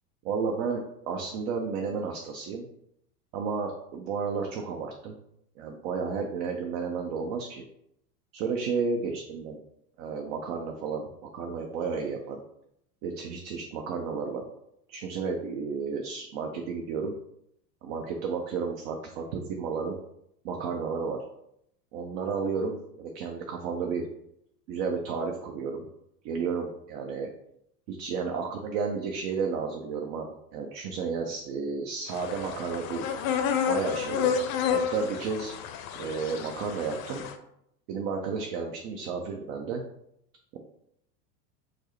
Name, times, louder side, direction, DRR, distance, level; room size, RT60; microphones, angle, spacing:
voice 1, 0.3-2.6 3.3-5.2 5.6-7.6 8.3-9.6 10.0-12.4 13.0-14.4 14.9-17.1 17.8-20.0 20.4-21.2 21.9-24.1 24.7-25.9 26.2-27.3 27.9-33.1 33.7-34.4 34.7-35.5 36.0-37.3 37.9-39.8, right 5 dB, 50° right, 2 dB, 0.6 m, -32 dB
sound 1, 32.1-37.3, left 7 dB, 55° left, 0.5 m, -30 dB
4.5 x 2.0 x 2.9 m, 0.77 s
hypercardioid pair, 90°, 50 cm